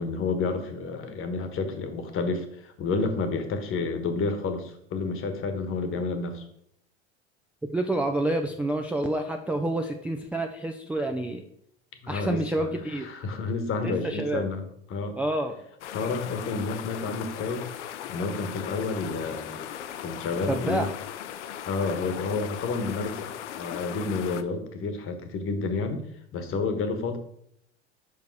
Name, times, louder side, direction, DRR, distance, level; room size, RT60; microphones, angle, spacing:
voice 1, 0.0-6.4 12.0-14.6 14.9-15.2 15.9-17.7 18.1-19.7 20.0-20.9 21.6-26.0 26.3-27.2, left 4 dB, 35° left, 7 dB, 1.3 m, -30 dB
voice 2, 7.7-11.4 12.1-13.1 13.8-14.4 15.2-15.5 20.5-20.9, right 1 dB, 5° right, 3 dB, 0.4 m, -28 dB
sound 1, 15.8-24.4, left 10 dB, 80° left, 0.6 m, -38 dB
5.2 x 4.9 x 4.7 m, 0.70 s
hypercardioid pair, 90°, 35 cm